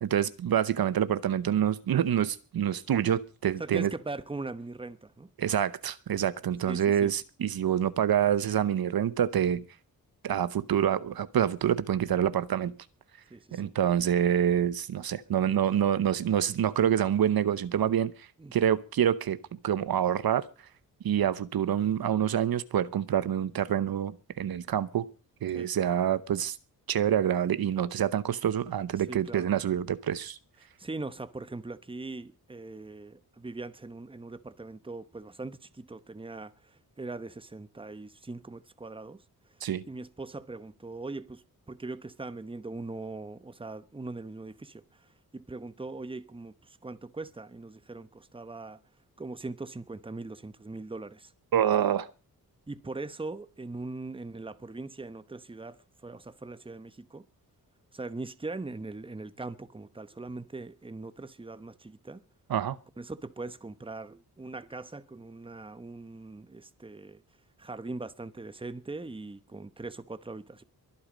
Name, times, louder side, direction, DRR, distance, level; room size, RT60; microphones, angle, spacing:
voice 1, 0.0-3.9 5.4-9.6 10.2-12.7 13.5-19.4 19.6-20.4 21.0-25.1 25.4-26.6 26.9-30.4 39.6-39.8 51.5-52.1 62.5-62.8, right 9 dB, 70° right, 0.9 m, -27 dB
voice 2, 3.6-5.3 6.6-7.1 13.3-13.7 18.4-18.5 25.5-25.7 29.1-29.5 30.8-36.5 37.0-39.2 39.9-44.8 45.3-48.8 49.2-51.3 52.7-57.2 57.9-62.2 63.0-67.2 67.6-70.6, right 3 dB, 15° right, 1.0 m, -40 dB
22.5 x 8.5 x 5.1 m
cardioid pair, 90°, 38 cm